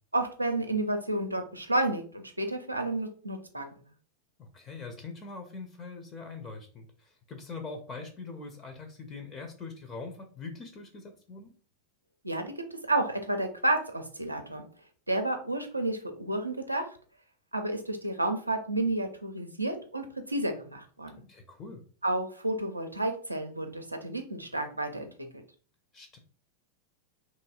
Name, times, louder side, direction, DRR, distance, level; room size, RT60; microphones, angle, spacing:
voice 1, 0.1-3.8 12.2-14.6 15.1-16.9 17.5-21.2 22.0-25.1, right 2 dB, 85° right, 5 dB, 0.4 m, -31 dB
voice 2, 4.4-11.5 21.3-21.8 25.9-26.2, left 4 dB, 25° left, 4 dB, 0.5 m, -43 dB
3.0 x 2.6 x 2.3 m, 0.42 s
figure-of-eight pair, 90°, 0 cm